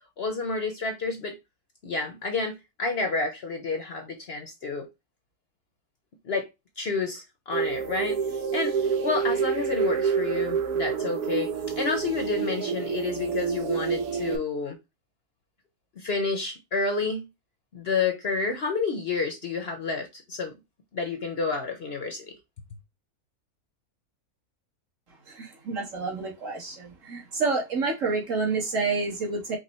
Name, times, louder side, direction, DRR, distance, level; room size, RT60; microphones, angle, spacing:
voice 1, 0.2-1.3 1.8-4.9 6.2-6.5 6.8-11.5 11.8-14.8 16.0-17.3 17.7-20.5 20.9-22.2, left 4 dB, 50° left, 0.8 m, -30 dB
sound 1, 7.5-14.4, right 7 dB, 90° right, 1.3 m, -28 dB
voice 2, 25.3-29.6, right 4 dB, 60° right, 1.8 m, -29 dB
4.8 x 2.2 x 4.2 m
omnidirectional pair, 1.6 m